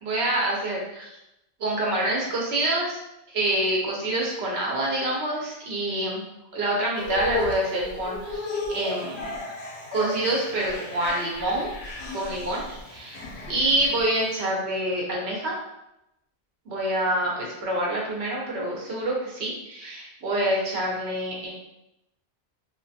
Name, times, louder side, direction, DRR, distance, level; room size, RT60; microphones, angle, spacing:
voice 1, 0.0-1.1 1.6-3.0 3.3-6.2 6.5-9.4 9.9-11.7 12.1-13.2 13.5-15.6 16.7-21.5, right 1 dB, 75° right, -3 dB, 1.0 m, -26 dB
sound 1, 7.0-14.4, left 2 dB, 80° left, 0.8 m, -34 dB
2.5 x 2.4 x 2.6 m, 0.87 s
omnidirectional pair, 1.1 m